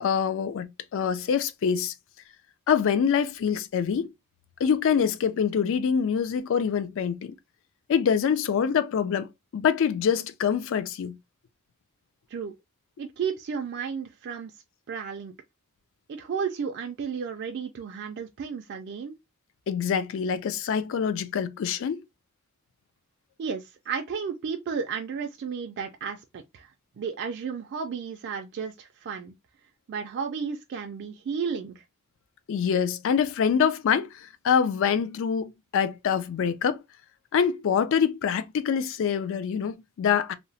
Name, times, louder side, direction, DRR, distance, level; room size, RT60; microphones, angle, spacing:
voice 1, 0.0-1.9 2.7-4.1 4.6-7.3 7.9-11.2 19.7-22.0 32.5-36.8 37.3-40.3, left 7 dB, 60° left, 0.3 m, -25 dB
voice 2, 13.0-14.5 14.9-15.3 16.1-19.2 23.4-26.7 27.0-29.3 29.9-31.8, right 6 dB, 50° right, 0.3 m, -33 dB
2.8 x 2.0 x 2.6 m
head